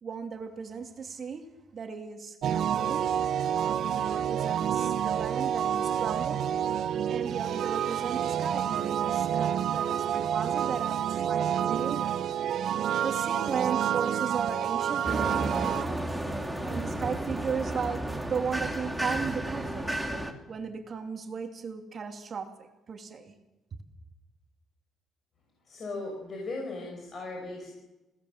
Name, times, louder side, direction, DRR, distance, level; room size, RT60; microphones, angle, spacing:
voice 1, 0.0-1.5 1.7-3.1 3.6-6.5 7.1-12.2 13.0-16.0 16.6-19.8 20.5-23.3, right 6 dB, 50° right, 4 dB, 2.8 m, -36 dB
sound 1, 2.4-15.8, right 9 dB, 70° right, 1.1 m, -28 dB
sound 2, 15.0-20.3, right 1 dB, 5° right, 3.1 m, -32 dB
voice 2, 25.7-27.7, left 2 dB, 50° left, 1 dB, 6.2 m, -37 dB
28.0 x 18.0 x 7.6 m, 1.1 s
cardioid pair, 90°, 0 cm